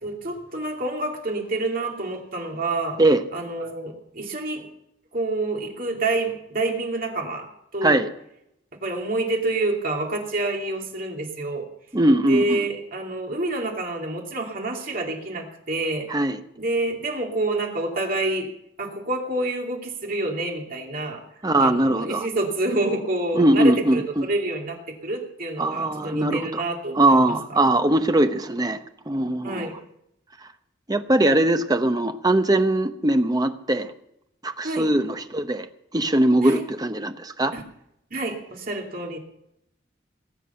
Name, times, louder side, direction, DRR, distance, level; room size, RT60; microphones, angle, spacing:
voice 1, 0.0-3.0 3.3-4.7 5.1-7.5 7.7-8.0 8.8-11.7 12.3-16.1 16.6-18.5 18.8-27.6 29.4-29.8 34.6-34.9 36.4-36.6 37.5-37.6 38.1-39.2, right 2 dB, 50° right, 1 dB, 2.7 m, -28 dB
voice 2, 11.9-12.6 16.1-16.4 21.4-22.3 23.3-24.3 25.6-26.6 27.0-28.8 29.1-29.7 30.9-33.9 34.4-35.7 35.9-37.5, right 1 dB, 20° right, 8 dB, 0.8 m, -21 dB
19.0 x 8.3 x 6.9 m, 0.78 s
head